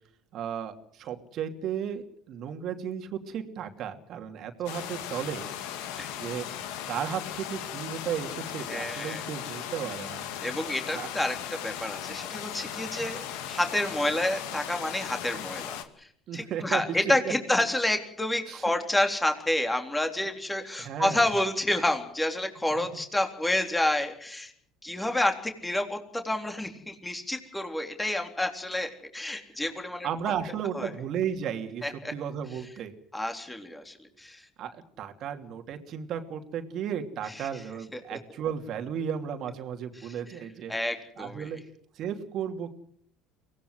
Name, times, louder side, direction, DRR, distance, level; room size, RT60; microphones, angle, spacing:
voice 1, 0.3-5.5 6.1-6.5 6.9-10.2 10.9-11.1 13.0-13.1 16.3-17.3 18.5-18.6 20.8-21.3 22.8-22.9 30.0-32.9 34.6-40.7 41.2-41.6 41.9-42.8, right 8 dB, 55° right, 6 dB, 2.9 m, -34 dB
sound 1, 4.7-15.8, left 10 dB, 75° left, 2.2 m, -37 dB
voice 2, 8.7-9.2 10.4-24.5 24.8-30.1 30.7-30.9 31.8-32.1 33.1-34.5 37.4-37.5 38.1-38.2 40.0-40.1 40.7-41.5, left 1 dB, 10° left, 5 dB, 3.7 m, -29 dB
24.0 x 17.5 x 8.0 m, 0.65 s
hypercardioid pair, 75°, 0 cm